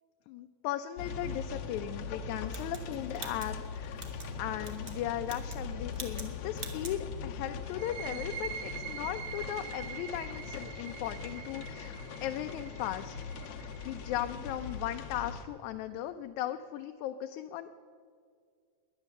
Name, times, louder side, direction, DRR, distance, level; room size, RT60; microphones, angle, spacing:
voice 1, 0.3-4.1 4.4-13.2 13.6-17.7, left 12 dB, 85° left, 7 dB, 2.0 m, -37 dB
sound 1, 1.0-15.4, left 5 dB, 65° left, 1.8 m, -41 dB
sound 2, 2.5-4.3 4.6-5.0 5.2-5.6 5.9-6.3 6.5-7.0, right 3 dB, 35° right, 1.1 m, -44 dB
sound 3, 7.7-15.1, right 9 dB, 85° right, 2.3 m, -44 dB
21.0 x 9.5 x 7.1 m, 2.2 s
omnidirectional pair, 3.4 m